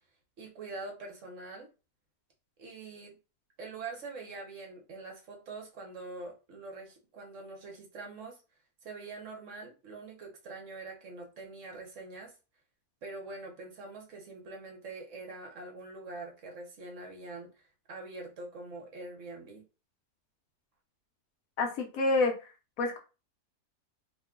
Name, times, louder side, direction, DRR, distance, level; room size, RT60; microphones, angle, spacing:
voice 1, 0.4-1.7 2.6-3.2 3.6-8.4 8.8-12.3 13.0-19.6, right 3 dB, 60° right, 1 dB, 1.1 m, -44 dB
voice 2, 21.6-22.5 22.8-23.0, left 3 dB, 70° left, 3 dB, 1.1 m, -28 dB
2.9 x 2.2 x 3.5 m, 0.31 s
omnidirectional pair, 1.6 m